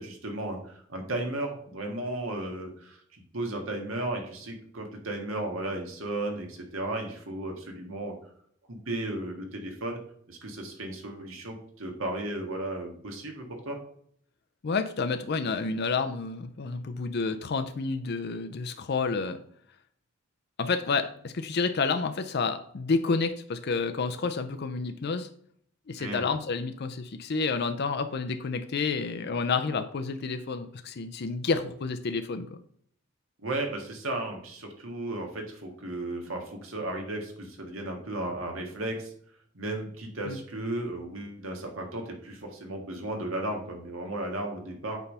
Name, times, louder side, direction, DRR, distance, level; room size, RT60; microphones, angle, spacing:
voice 1, 0.0-8.1 8.7-10.0 10.3-13.8 26.0-26.3 33.4-39.1 39.5-45.0, right 1 dB, 80° right, 2 dB, 1.7 m, -35 dB
voice 2, 14.6-19.4 20.6-25.3 25.9-32.6 40.3-40.4, left 4 dB, 55° left, 8 dB, 0.5 m, -29 dB
8.2 x 3.4 x 5.4 m, 0.64 s
head